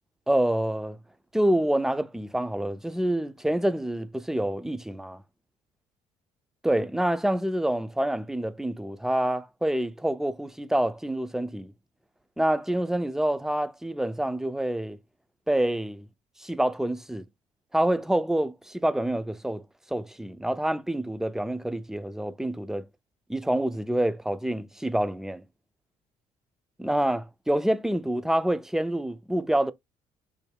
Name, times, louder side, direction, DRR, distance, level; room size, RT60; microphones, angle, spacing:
voice 1, 0.3-1.0 1.3-5.2 6.6-11.7 12.4-15.0 15.5-16.1 16.4-17.3 17.7-19.6 19.9-22.9 23.3-25.4 26.8-29.7, right 1 dB, 5° right, 0.4 m, -27 dB
3.2 x 2.1 x 3.3 m
supercardioid pair, 60°, 17 cm